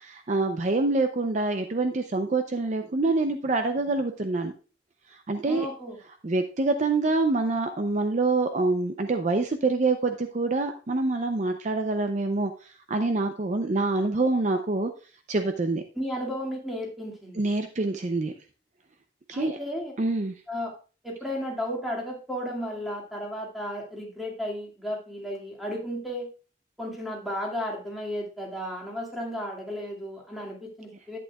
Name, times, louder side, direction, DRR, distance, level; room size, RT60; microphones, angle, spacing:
voice 1, 0.0-4.5 5.1-5.7 6.2-14.9 15.3-15.8 17.4-18.3 19.3-19.6 20.0-20.3, right 3 dB, 40° right, 6 dB, 0.5 m, -26 dB
voice 2, 5.4-6.0 16.0-17.4 19.3-19.9 20.5-20.7 21.0-26.3 26.8-31.2, equal, ahead, -2 dB, 2.1 m, -34 dB
10.5 x 8.6 x 2.3 m, 0.36 s
head